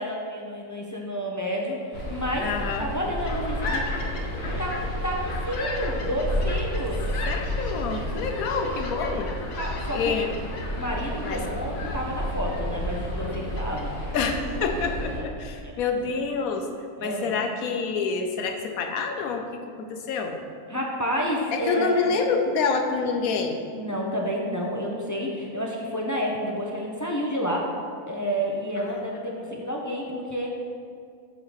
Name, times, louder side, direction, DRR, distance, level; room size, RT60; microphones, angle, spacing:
voice 1, 0.0-4.0 4.6-7.1 8.5-8.9 9.6-10.1 10.8-14.0 15.1-15.2 15.6-16.2 17.0-17.3 20.7-22.2 23.7-27.7 28.1-30.5, equal, 25° left, -1 dB, 0.4 m, -30 dB
sound 1, 1.9-15.2, equal, 45° left, 1.5 m, -31 dB
voice 2, 2.4-2.9 7.3-9.3 9.9-10.3 11.2-11.4 14.1-16.7 17.0-19.5 19.8-20.4 21.5-23.6 28.8-29.1, left 5 dB, 70° left, 5 dB, 1.2 m, -27 dB
sound 2, 3.2-14.0, left 3 dB, 85° left, 1.6 m, -37 dB
8.0 x 3.8 x 6.4 m, 2.3 s
omnidirectional pair, 1.6 m